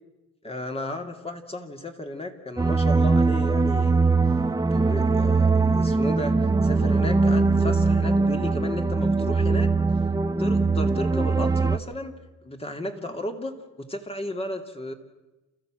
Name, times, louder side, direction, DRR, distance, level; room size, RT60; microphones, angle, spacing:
voice 1, 0.4-4.4 4.7-9.7 10.4-12.1 12.4-14.9, left 1 dB, 20° left, 5 dB, 2.6 m, -34 dB
sound 1, 2.6-11.8, right 3 dB, 10° right, 0.9 m, -21 dB
29.5 x 14.0 x 7.6 m, 1.1 s
cardioid pair, 90°, 30 cm